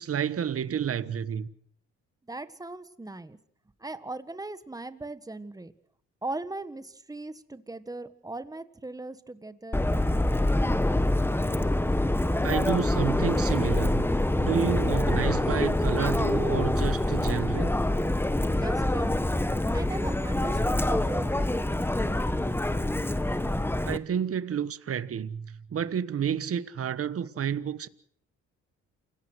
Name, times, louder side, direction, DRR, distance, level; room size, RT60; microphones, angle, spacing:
voice 1, 0.0-1.5 12.4-14.0 14.4-17.7 23.8-27.9, right 8 dB, 50° right, 1.3 m, -30 dB
voice 2, 2.3-3.4 3.8-5.7 6.2-9.9 18.6-19.4 19.7-22.1, right 2 dB, 10° right, 1.6 m, -39 dB
Subway metro underground, 9.7-24.0, left 1 dB, 5° left, 1.2 m, -25 dB
28.0 x 17.5 x 6.3 m
cardioid pair, 90°, 30 cm